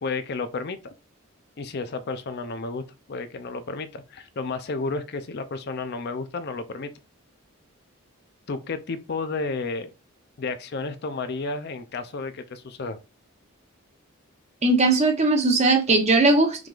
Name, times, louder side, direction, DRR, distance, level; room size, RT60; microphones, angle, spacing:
voice 1, 0.0-0.9 1.6-6.9 8.5-9.9 10.4-13.0, left 3 dB, 50° left, 0.5 m, -32 dB
voice 2, 14.6-16.7, right 2 dB, 30° right, 0.8 m, -19 dB
4.8 x 3.7 x 2.4 m
head